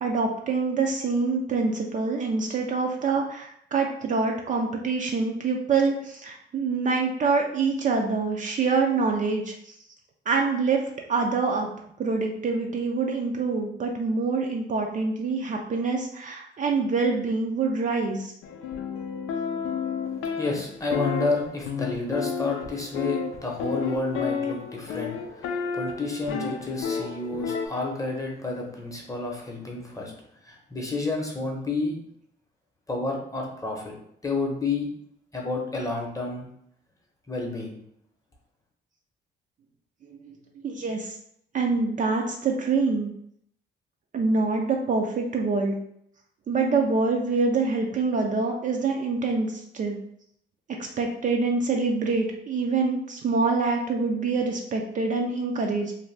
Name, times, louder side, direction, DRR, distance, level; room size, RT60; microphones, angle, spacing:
voice 1, 0.0-9.7 10.3-10.8 11.1-11.7 12.0-18.3 40.2-40.4 40.6-41.2 41.5-43.1 44.1-45.8 46.5-50.0 51.0-55.9, right 4 dB, 40° right, 1 dB, 0.4 m, -25 dB
sound 1, 18.4-27.7, left 6 dB, 85° left, 0.4 m, -31 dB
voice 2, 20.4-30.1 30.4-32.0 32.9-33.9 34.2-34.9 35.3-36.5 37.3-37.8, left 3 dB, 15° left, -1 dB, 0.8 m, -30 dB
2.6 x 2.1 x 3.2 m, 0.71 s
cardioid pair, 90°, 20 cm